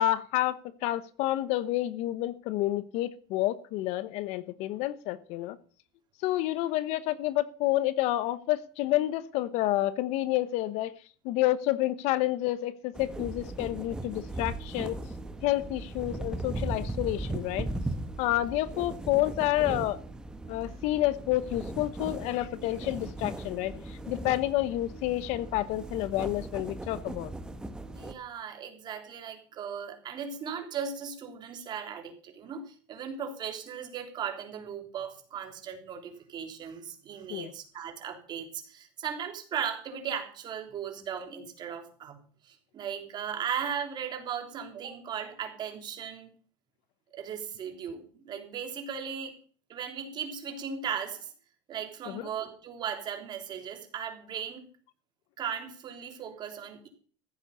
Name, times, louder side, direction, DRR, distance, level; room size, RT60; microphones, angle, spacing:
voice 1, 0.0-5.6 6.2-11.0 11.2-15.0 15.4-17.7 18.2-20.0 20.5-27.3 37.3-37.5 52.0-52.3, left 15 dB, 65° left, 1.1 m, -29 dB
sound 1, 12.9-28.1, right 2 dB, 5° right, 1.3 m, -38 dB
voice 2, 27.9-42.2 42.4-46.3 47.1-49.3 49.7-51.3 51.7-54.7 55.4-56.9, right 7 dB, 35° right, 3.5 m, -37 dB
15.0 x 8.3 x 7.0 m
cardioid pair, 145°, 12 cm